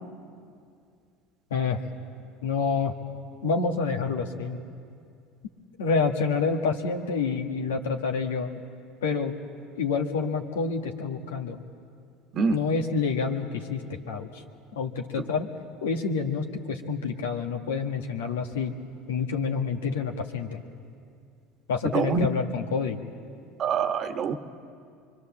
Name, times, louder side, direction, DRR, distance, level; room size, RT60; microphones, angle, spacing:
voice 1, 2.4-3.0 3.4-4.6 5.8-8.6 9.0-9.3 9.8-11.6 12.5-14.4 14.8-15.5 15.8-18.7 19.1-20.6 21.7-23.0, left 5 dB, 85° left, 4 dB, 1.7 m, -28 dB
voice 2, 21.9-22.3 23.6-24.4, right 5 dB, 45° right, 8 dB, 1.3 m, -25 dB
25.5 x 23.5 x 7.4 m, 2.3 s
hypercardioid pair, 80°, 0 cm